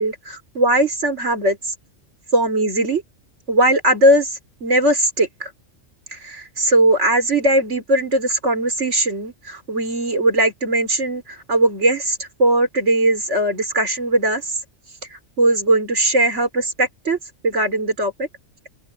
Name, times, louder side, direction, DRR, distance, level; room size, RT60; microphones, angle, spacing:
voice 1, 0.0-1.6 2.3-3.0 3.5-4.3 4.6-5.5 6.1-11.2 11.5-14.4 15.4-17.2 17.4-18.3, right 1 dB, 65° right, 4.4 m, -19 dB
open air
omnidirectional pair, 1.3 m